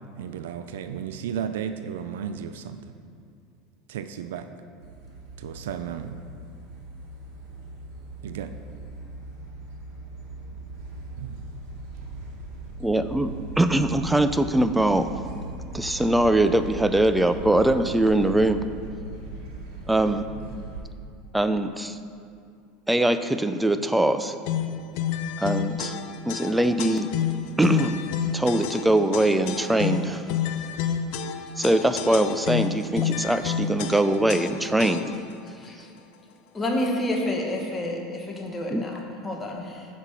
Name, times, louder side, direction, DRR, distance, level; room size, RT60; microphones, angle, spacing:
voice 1, 0.2-3.0 3.9-4.5 5.4-6.2 8.2-8.6 11.2-11.4, right 8 dB, 85° right, 10 dB, 0.4 m, -34 dB
sound 1, 4.8-20.8, right 2 dB, 60° right, 1.4 m, -39 dB
voice 2, 12.8-15.1 15.7-18.6 19.9-20.3 21.3-22.0 22.9-24.3 25.4-26.0 26.3-27.1 27.6-28.0 28.3-30.3 31.6-35.2 38.7-38.8, right 1 dB, 5° right, 10 dB, 0.4 m, -22 dB
sound 2, 24.4-35.3, left 8 dB, 65° left, 0.5 m, -29 dB
voice 3, 36.5-39.9, left 1 dB, 20° left, 0 dB, 1.2 m, -29 dB
6.3 x 5.0 x 5.6 m, 2.4 s
supercardioid pair, 105°, 0 cm